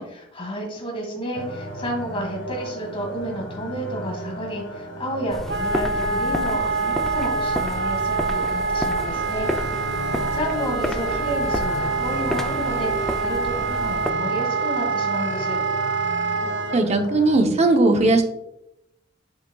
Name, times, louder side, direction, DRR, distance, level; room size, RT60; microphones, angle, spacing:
voice 1, 0.1-9.5 9.8-15.6, right 1 dB, 30° left, 1 dB, 1.8 m, -31 dB
sound 1, 1.3-17.4, right 1 dB, 70° left, 1.5 m, -34 dB
sound 2, 5.3-14.1, equal, ahead, 0.4 m, -31 dB
Wind instrument woodwind instrument, 5.5-16.8, right 4 dB, 65° right, 0.5 m, -26 dB
voice 2, 16.7-18.2, right 2 dB, 35° right, 5 dB, 0.8 m, -18 dB
7.2 x 6.6 x 2.3 m, 0.83 s
head